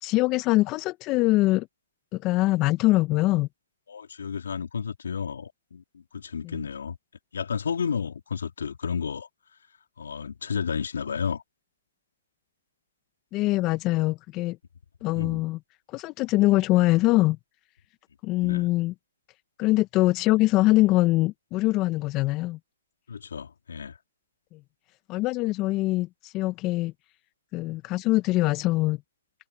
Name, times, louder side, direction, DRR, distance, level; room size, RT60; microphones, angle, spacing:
voice 1, 0.0-1.7 2.1-3.5 6.4-6.6 13.3-14.6 15.0-15.6 15.9-17.4 18.2-18.9 19.6-22.6 24.5-24.6 25.1-26.9 27.5-29.0, left 19 dB, 30° left, 1.2 m, -23 dB
voice 2, 3.9-7.0 7.3-9.3 10.0-11.4 15.1-15.4 18.4-18.7 23.1-23.9, left 6 dB, 75° left, 3.6 m, -32 dB
hypercardioid pair, 130°, 0 cm